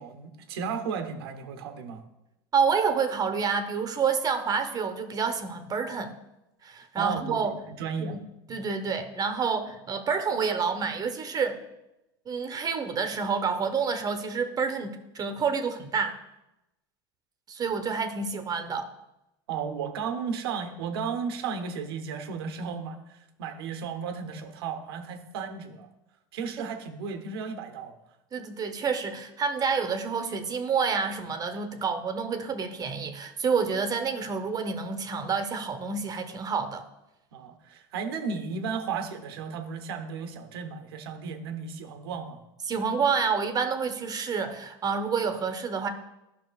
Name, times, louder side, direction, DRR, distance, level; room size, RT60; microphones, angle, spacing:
voice 1, 0.0-2.0 7.0-8.2 19.5-25.9 26.3-27.9 37.3-42.4, right 6 dB, 85° right, 7 dB, 0.8 m, -34 dB
voice 2, 2.5-6.1 6.6-7.5 8.0-8.2 8.5-11.6 12.3-16.1 17.5-18.9 26.6-26.7 28.3-36.8 42.7-45.9, right 5 dB, 30° right, 7 dB, 0.8 m, -28 dB
11.0 x 6.0 x 2.4 m, 0.94 s
supercardioid pair, 105°, 12 cm